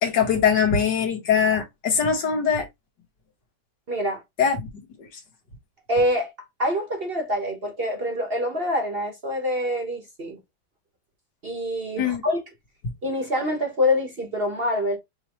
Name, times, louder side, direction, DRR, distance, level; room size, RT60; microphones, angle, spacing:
voice 1, 0.0-2.7 4.4-4.6 12.0-12.2, left 7 dB, 70° left, 2.1 m, -21 dB
voice 2, 3.9-4.2 5.9-6.3 6.6-10.4 11.4-12.4 13.0-15.0, left 1 dB, 35° right, 1.3 m, -25 dB
5.5 x 3.2 x 3.0 m
omnidirectional pair, 2.0 m